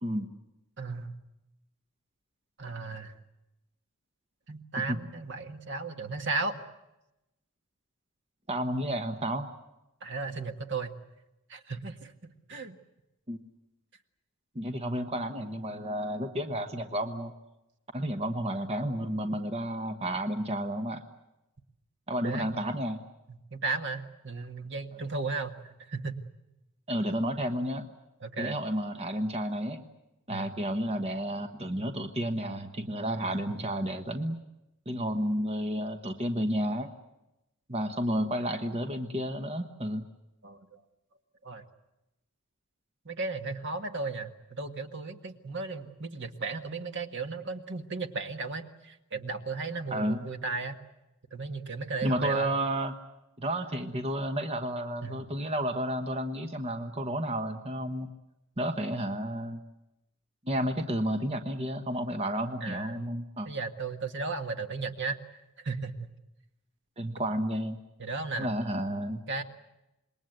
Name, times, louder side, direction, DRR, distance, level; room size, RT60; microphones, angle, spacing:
voice 1, 0.8-1.1 2.6-3.1 4.5-6.6 10.0-10.9 11.5-12.1 12.5-12.8 22.2-22.5 23.3-26.2 28.2-28.6 30.3-30.5 40.4-40.8 41.4-41.6 43.0-50.8 51.3-52.5 55.0-55.2 62.6-63.0 63.4-65.2 65.6-66.1 68.0-68.5 69.3-69.4, right 3 dB, 60° right, 6 dB, 1.7 m, -35 dB
voice 2, 8.5-9.5 13.3-13.4 14.5-17.3 17.9-21.0 22.1-23.0 26.9-27.8 28.4-29.8 30.3-34.4 34.9-36.9 37.7-40.0 49.9-50.2 52.0-52.9 53.4-58.1 58.6-59.6 60.4-63.5 67.0-67.8 68.4-69.2, equal, 30° right, 6 dB, 1.3 m, -31 dB
27.0 x 21.5 x 8.0 m, 0.92 s
head